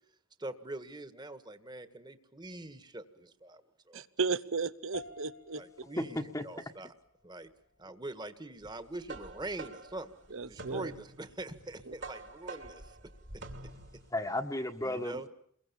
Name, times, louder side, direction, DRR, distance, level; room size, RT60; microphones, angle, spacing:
voice 1, 0.4-4.0 5.6-6.9 7.2-7.5 7.8-13.0 13.6-13.7 14.8-15.3, right 2 dB, 20° right, 10 dB, 1.7 m, -43 dB
voice 2, 3.9-5.6 10.3-10.9 11.9-12.0, right 4 dB, 70° right, 15 dB, 1.1 m, -34 dB
sound 1, 4.9-14.5, left 4 dB, 75° left, 3.5 m, -56 dB
voice 3, 6.0-6.5 14.1-15.3, left 1 dB, 15° left, 2 dB, 1.4 m, -34 dB
sound 2, 8.7-14.1, right 2 dB, 55° right, 3.0 m, -47 dB
29.5 x 22.5 x 7.1 m, 0.66 s
head